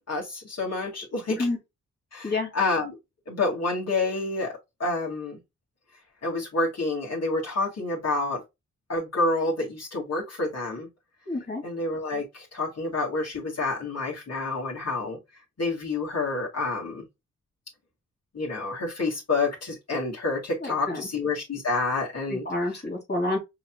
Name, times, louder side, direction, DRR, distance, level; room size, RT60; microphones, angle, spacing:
voice 1, 0.1-1.5 2.1-3.0 3.3-5.4 6.2-8.4 8.9-10.9 11.6-15.2 15.6-17.0 18.3-22.4, left 3 dB, 55° left, 2.1 m, -28 dB
voice 2, 11.3-11.6 20.6-21.1 22.3-23.4, left 2 dB, 35° left, 2.3 m, -28 dB
5.5 x 3.1 x 2.2 m
cardioid pair, 45°, 30 cm